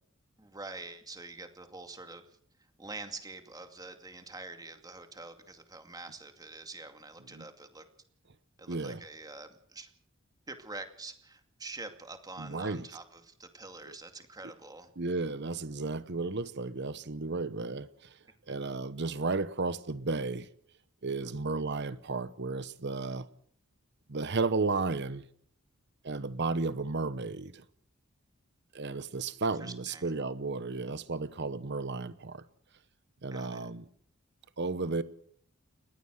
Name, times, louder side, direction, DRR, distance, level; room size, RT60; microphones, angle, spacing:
voice 1, 0.4-2.2 2.8-7.9 8.6-9.9 10.5-14.9 18.5-18.6 21.2-21.3 29.6-30.1 33.3-33.6, right 3 dB, 20° right, 2.3 m, -46 dB
voice 2, 8.7-9.0 12.4-12.9 13.8-14.0 15.0-18.2 18.5-20.5 21.0-23.3 24.1-25.2 26.0-27.6 28.7-32.4 33.2-33.8 34.6-35.0, right 3 dB, 55° right, 1.0 m, -33 dB
29.5 x 15.0 x 6.5 m
head